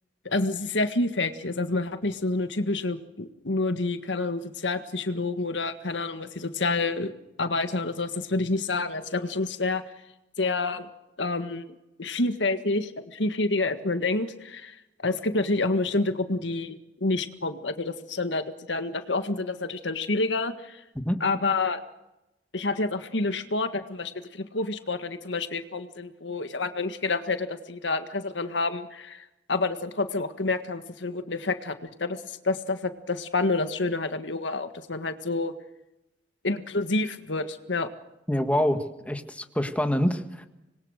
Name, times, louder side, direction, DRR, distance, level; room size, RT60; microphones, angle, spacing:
voice 1, 0.3-9.8 10.4-10.9 11.2-20.8 21.2-21.8 22.5-35.5 36.4-37.9, left 3 dB, 90° left, 9 dB, 1.7 m, -28 dB
voice 2, 38.3-40.5, equal, 10° left, 6 dB, 1.7 m, -26 dB
26.0 x 21.5 x 6.5 m, 0.93 s
head